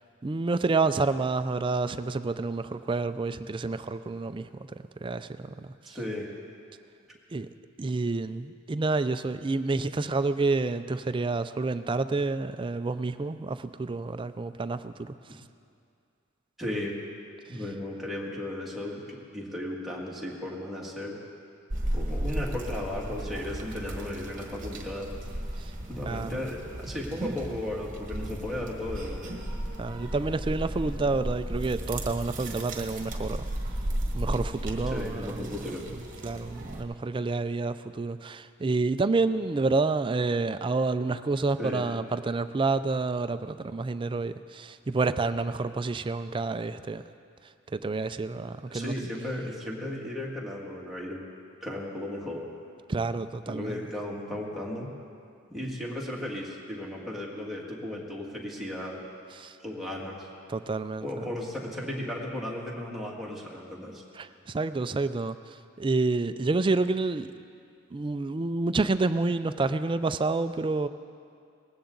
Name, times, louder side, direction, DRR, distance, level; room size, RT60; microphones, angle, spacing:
voice 1, 0.2-6.0 7.3-7.5 7.8-15.4 17.5-17.6 25.6-25.7 26.1-26.4 29.8-33.5 34.1-35.6 36.2-47.0 47.7-48.9 52.9-53.9 59.3-59.6 60.5-61.3 64.2-67.3 67.9-70.9, right 3 dB, 25° right, 12 dB, 0.4 m, -29 dB
voice 2, 5.9-6.3 16.6-17.0 17.5-21.2 21.9-25.1 25.9-29.3 34.9-35.8 41.6-41.9 48.7-51.2 51.6-52.5 53.5-54.9 55.5-59.0 59.6-60.3 61.0-64.0, left 1 dB, ahead, -4 dB, 2.0 m, -35 dB
sound 1, 21.7-36.8, right 1 dB, 40° right, 1.5 m, -35 dB
19.5 x 16.0 x 3.9 m, 2.4 s
head